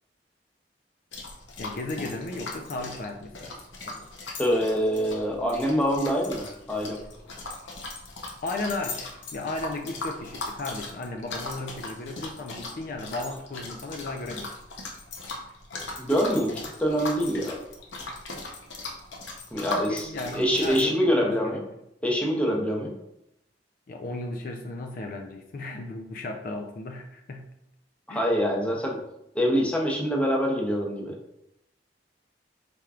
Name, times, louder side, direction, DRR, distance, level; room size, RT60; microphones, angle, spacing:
sound 1, 1.1-20.8, left 2 dB, 80° left, 0.8 m, -39 dB
voice 1, 1.6-3.6 3.9-4.1 8.4-14.5 19.6-21.4 23.9-27.5 28.1-28.3, left 2 dB, 50° left, 3 dB, 0.4 m, -35 dB
voice 2, 4.4-7.0 16.0-17.6 19.5-21.6 22.0-22.9 28.1-29.0 29.3-31.2, equal, 5° left, -1 dB, 0.6 m, -25 dB
4.4 x 3.4 x 2.4 m, 0.82 s
head